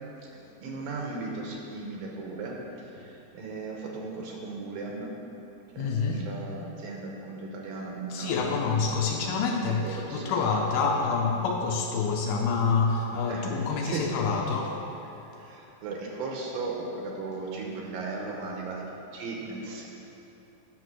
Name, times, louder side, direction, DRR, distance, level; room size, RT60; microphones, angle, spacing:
voice 1, 0.2-5.1 5.7-8.7 9.6-10.4 13.2-14.1 15.4-19.9, right 3 dB, 70° right, -1 dB, 2.5 m, -37 dB
voice 2, 5.8-6.3 8.1-14.8, left 4 dB, 80° left, 1 dB, 2.4 m, -27 dB
9.8 x 6.5 x 6.2 m, 3.0 s
omnidirectional pair, 4.7 m